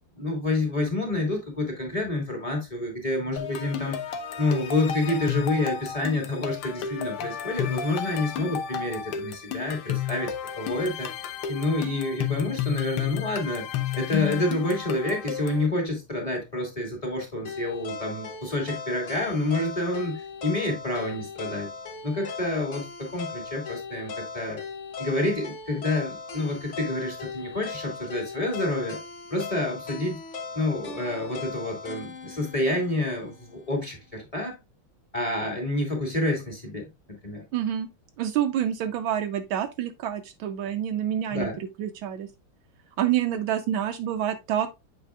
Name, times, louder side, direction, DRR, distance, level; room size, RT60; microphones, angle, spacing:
voice 1, 0.2-4.0 4.4-11.1 11.5-13.7 14.0-21.7 22.0-24.6 25.0-29.0 29.3-30.2 30.5-34.6 35.1-37.4 41.3-41.6, left 2 dB, 15° left, 2.3 m, -28 dB
sound 1, 3.4-15.7, left 9 dB, 85° left, 1.7 m, -32 dB
sound 2, 17.4-33.5, left 4 dB, 55° left, 0.8 m, -38 dB
voice 2, 37.5-37.9 38.2-42.3 43.0-44.7, right 10 dB, 75° right, 1.3 m, -27 dB
8.1 x 5.2 x 2.3 m
omnidirectional pair, 2.3 m